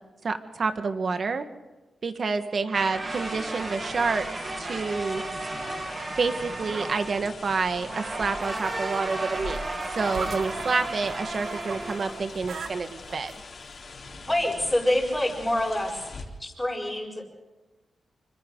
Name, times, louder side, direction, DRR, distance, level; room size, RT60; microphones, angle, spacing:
voice 1, 0.2-1.4 2.0-4.3 4.6-5.2 6.2-9.7 9.9-13.3, right 4 dB, 55° right, 8 dB, 1.5 m, -28 dB
sound 1, 2.7-12.8, right 2 dB, 35° right, 2.1 m, -34 dB
sound 2, 3.1-16.2, left 4 dB, 50° left, 3.8 m, -43 dB
sound 3, 8.4-11.8 12.1-13.3 14.1-14.2, right 5 dB, 75° right, 1.7 m, -40 dB
voice 2, 14.2-15.9 16.4-17.2, left 1 dB, 10° left, -3 dB, 7.4 m, -26 dB
27.0 x 25.0 x 3.9 m, 1.1 s
cardioid pair, 90°, 0 cm